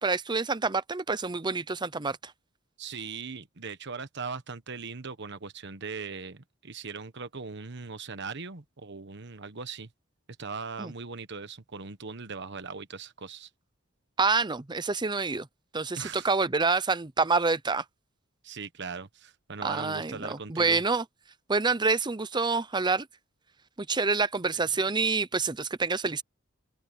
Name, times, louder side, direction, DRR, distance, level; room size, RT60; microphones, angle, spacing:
voice 1, 0.0-2.3 10.8-10.9 14.2-15.5 15.7-17.8 19.6-21.0 21.5-23.1 23.9-26.2, right 4 dB, 20° right, 0.7 m, -27 dB
voice 2, 2.8-9.9 10.4-13.5 16.0-16.3 18.4-20.8 24.5-24.7, right 4 dB, 60° right, 1.3 m, -39 dB
head